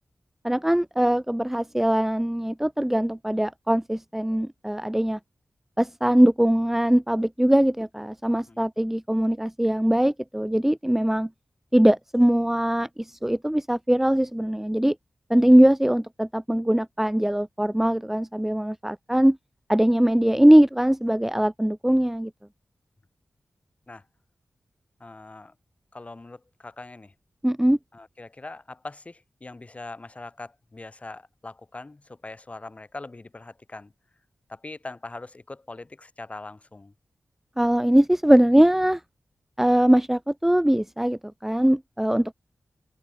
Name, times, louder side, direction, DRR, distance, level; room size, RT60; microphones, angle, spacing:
voice 1, 0.4-5.2 5.8-11.3 11.7-15.0 15.3-19.4 19.7-22.3 27.4-27.8 37.6-39.0 39.6-42.3, right 1 dB, 5° right, 3.7 m, -21 dB
voice 2, 25.0-25.5 25.9-27.1 27.9-33.9 34.5-36.9, left 2 dB, 30° left, 7.3 m, -41 dB
wide cardioid pair, 105°, 4 cm